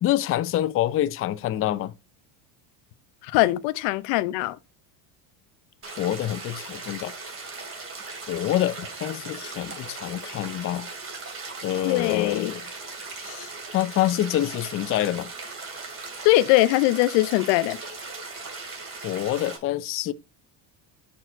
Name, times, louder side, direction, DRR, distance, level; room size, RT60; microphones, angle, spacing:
voice 1, 0.0-1.9 6.0-7.1 8.3-10.9 11.6-12.6 13.2-15.3 19.0-20.1, left 13 dB, 30° left, 0.4 m, -26 dB
voice 2, 3.2-4.6 11.8-12.5 16.2-17.8, left 17 dB, 70° left, 0.8 m, -21 dB
sound 1, 5.8-19.6, right 3 dB, 30° right, 2.7 m, -38 dB
6.5 x 4.4 x 4.3 m
supercardioid pair, 115°, 45 cm